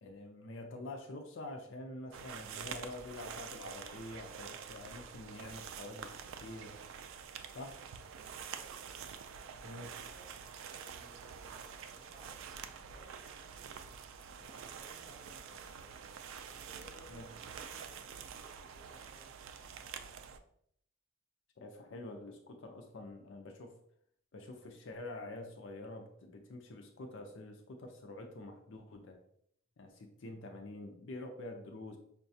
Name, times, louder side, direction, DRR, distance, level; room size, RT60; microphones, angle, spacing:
voice 1, 0.0-6.8 7.5-7.8 9.6-9.9 17.1-17.3 21.6-23.7 24.3-29.2 29.8-32.0, left 2 dB, 65° left, 4 dB, 0.5 m, -47 dB
sound 1, 2.1-20.4, right 7 dB, 75° right, 0.3 m, -47 dB
voice 2, 8.3-8.7 9.6-10.4 10.8-13.1 14.4-15.9 16.5-19.9, right 1 dB, 10° left, -4 dB, 0.7 m, -61 dB
5.5 x 2.2 x 2.6 m, 0.68 s
head